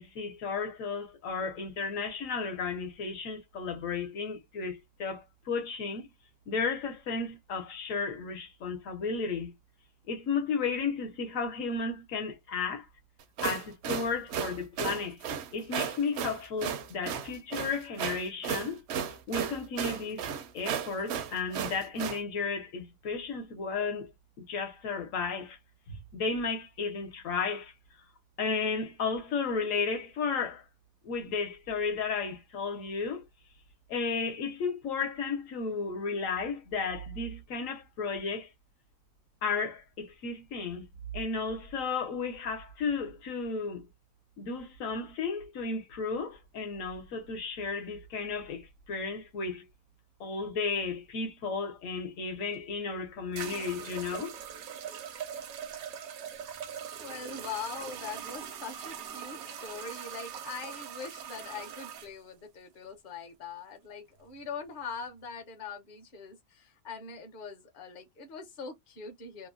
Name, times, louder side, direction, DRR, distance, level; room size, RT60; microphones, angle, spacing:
voice 1, 0.0-6.1 6.5-9.5 10.1-12.9 13.4-15.2 15.5-18.8 19.3-20.3 20.5-24.1 24.5-25.6 25.9-27.7 28.4-30.6 31.0-33.2 33.9-38.5 39.4-40.9 41.1-43.8 44.4-49.7 50.2-54.3, left 4 dB, 65° left, 1.2 m, -33 dB
sound 1, 13.2-22.2, right 7 dB, 65° right, 0.7 m, -34 dB
sound 2, 52.5-52.6 53.4-62.1, right 8 dB, 80° right, 1.1 m, -41 dB
voice 2, 57.0-69.5, left 5 dB, 45° left, 0.8 m, -42 dB
3.0 x 2.2 x 2.4 m
omnidirectional pair, 1.5 m